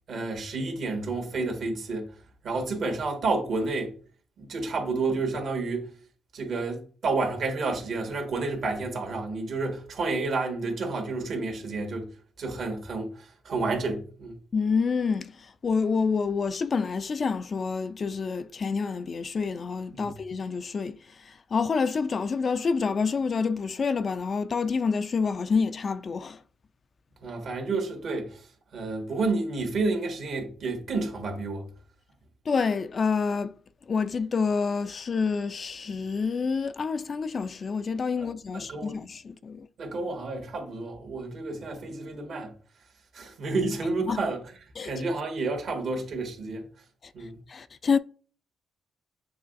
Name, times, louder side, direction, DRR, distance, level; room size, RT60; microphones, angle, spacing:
voice 1, 0.1-2.1 2.4-3.9 4.4-5.9 6.3-12.1 12.4-14.4 19.9-20.1 27.2-28.5 28.7-31.6 38.2-39.0 39.8-42.5 43.1-44.4 44.8-46.6 47.1-47.4, right 3 dB, 65° right, 1.6 m, -30 dB
voice 2, 14.5-26.4 32.5-33.5 33.9-39.7 44.1-44.2 44.8-44.9 47.5-48.0, left 5 dB, 50° left, 0.3 m, -28 dB
6.8 x 3.0 x 2.5 m
cardioid pair, 65°, 0 cm